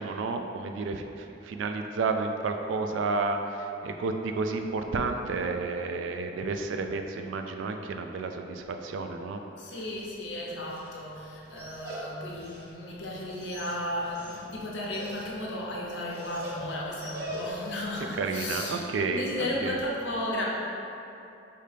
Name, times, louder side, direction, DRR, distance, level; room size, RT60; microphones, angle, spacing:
voice 1, 0.0-9.4 18.2-19.8, right 4 dB, 85° right, 5 dB, 0.3 m, -31 dB
Dog, 9.5-17.8, equal, 55° right, 0.7 m, -44 dB
voice 2, 9.6-20.4, left 1 dB, 70° left, -3 dB, 0.7 m, -34 dB
5.1 x 2.8 x 3.3 m, 2.7 s
head